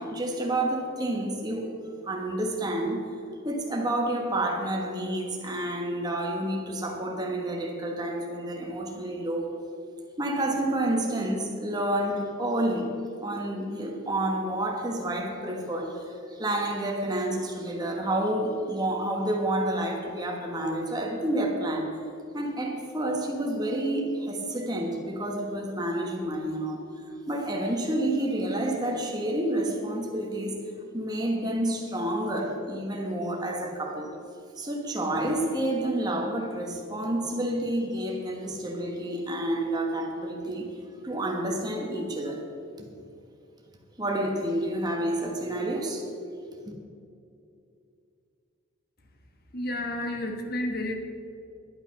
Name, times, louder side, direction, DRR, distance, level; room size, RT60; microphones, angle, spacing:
voice 1, 0.0-1.7 2.0-3.1 3.4-9.6 10.2-12.9 13.2-21.9 22.3-26.8 27.3-30.6 30.9-34.2 34.6-40.7 41.0-42.9 44.0-46.1, right 1 dB, 20° right, 1 dB, 1.3 m, -29 dB
voice 2, 49.5-50.9, left 1 dB, 45° left, 3 dB, 1.4 m, -31 dB
11.0 x 9.0 x 5.8 m, 2.5 s
head